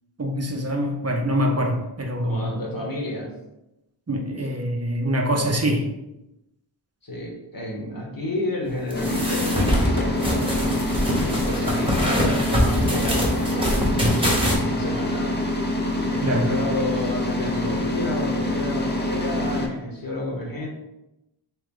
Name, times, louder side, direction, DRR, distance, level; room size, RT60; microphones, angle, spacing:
voice 1, 0.2-2.5 4.1-5.9 16.2-16.6, equal, 35° right, 3 dB, 0.6 m, -24 dB
voice 2, 2.2-3.3 7.0-14.1 14.7-15.4 16.1-20.7, left 1 dB, 45° left, -2 dB, 1.0 m, -31 dB
sound 1, 8.9-19.7, left 1 dB, 20° left, 0.6 m, -25 dB
sound 2, 8.9-14.5, equal, 10° right, 0.9 m, -24 dB
3.1 x 3.0 x 3.7 m, 0.91 s
wide cardioid pair, 70°, 47 cm